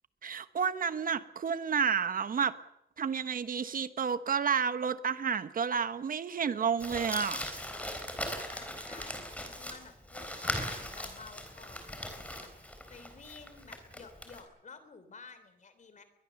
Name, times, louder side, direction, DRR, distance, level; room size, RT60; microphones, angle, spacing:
voice 1, 0.2-2.5 3.0-7.4, right 6 dB, 55° right, 12 dB, 1.0 m, -30 dB
Crumpling crinkling, 6.8-14.4, left 1 dB, 10° left, 3.9 m, -39 dB
voice 2, 8.2-16.0, left 4 dB, 45° left, 11 dB, 3.3 m, -53 dB
22.0 x 21.5 x 7.1 m, 0.85 s
wide cardioid pair, 160°, 17 cm